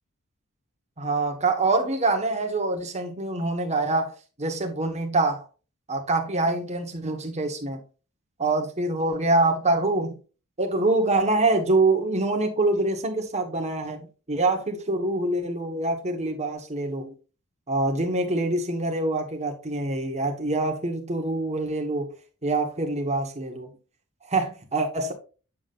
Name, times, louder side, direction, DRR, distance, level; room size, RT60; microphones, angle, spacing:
voice 1, 1.0-4.1 4.4-5.4 5.9-7.8 8.4-10.1 10.6-17.1 17.7-22.1 22.4-23.7 24.3-25.1, right 2 dB, 30° right, 1.5 m, -25 dB
7.4 x 7.2 x 2.5 m
head